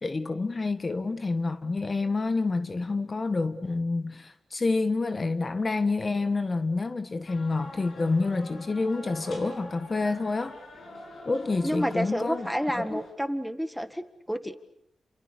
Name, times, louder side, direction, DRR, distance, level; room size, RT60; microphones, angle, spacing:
voice 1, 0.0-10.6 11.2-12.5 12.7-13.0, left 3 dB, 35° left, 1.5 m, -28 dB
sound 1, 7.3-13.1, left 1 dB, 70° left, 7.2 m, -45 dB
voice 2, 11.6-14.5, equal, ahead, 1.9 m, -30 dB
29.5 x 28.0 x 6.7 m
cardioid pair, 80°, 0 cm